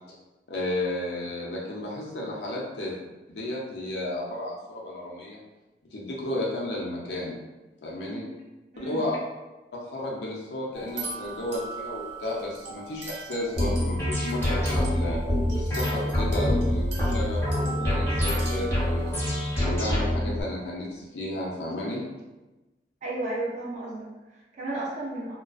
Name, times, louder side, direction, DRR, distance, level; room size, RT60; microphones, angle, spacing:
voice 1, 0.5-3.0 3.3-5.4 5.9-7.4 7.8-8.2 8.8-9.2 9.7-15.2 15.5-19.1 19.6-22.0, left 1 dB, 70° left, -5 dB, 0.5 m, -33 dB
voice 2, 7.9-8.3 8.7-9.1 23.0-25.3, right 2 dB, 40° right, -6 dB, 0.4 m, -34 dB
sound 1, 10.7-19.6, right 2 dB, 85° right, 0.8 m, -39 dB
sound 2, 13.6-20.4, left 1 dB, 15° left, 0.8 m, -26 dB
2.4 x 2.2 x 2.3 m, 1.1 s
head